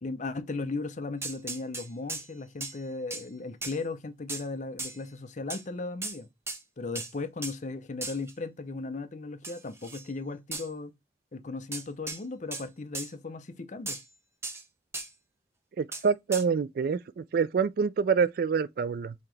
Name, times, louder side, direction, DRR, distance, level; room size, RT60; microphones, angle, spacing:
voice 1, 0.0-6.3 6.8-10.9 11.3-14.0, left 3 dB, 45° left, 0.6 m, -36 dB
sound 1, 1.2-2.3 2.6-2.8 3.1-3.2 3.6-3.8 4.3-4.4 4.8-5.0 5.5-5.6 6.0-6.2 6.5-6.6 6.9-7.1 7.4-7.5 8.0-8.3 9.4-10.1 10.5-10.7 11.7-12.2 12.5-12.7 12.9-13.1 13.9-14.0 14.4-14.6 14.9-15.1 15.9-16.0 16.3-16.4, right 3 dB, 15° right, 0.7 m, -37 dB
voice 2, 15.8-19.1, right 6 dB, 55° right, 0.3 m, -26 dB
5.6 x 2.9 x 3.2 m
head